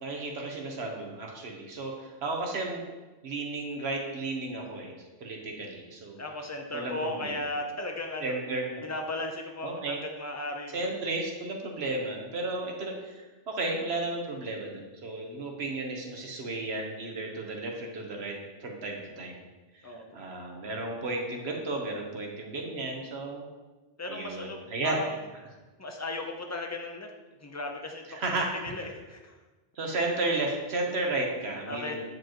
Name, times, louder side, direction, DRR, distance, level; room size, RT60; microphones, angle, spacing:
voice 1, 0.0-2.8 3.2-6.2 6.7-7.3 8.2-8.6 9.6-10.0 10.7-18.4 18.6-19.4 19.9-23.5 24.1-25.0 28.1-28.8 29.8-32.0, right 2 dB, 60° right, 1 dB, 1.3 m, -33 dB
voice 2, 6.2-8.4 8.8-10.9 19.8-20.0 24.0-24.6 24.8-25.2 25.8-27.1 27.4-29.3 29.8-29.9 31.7-32.0, left 2 dB, 20° left, 3 dB, 0.4 m, -36 dB
9.2 x 5.0 x 3.0 m, 1.2 s
omnidirectional pair, 1.3 m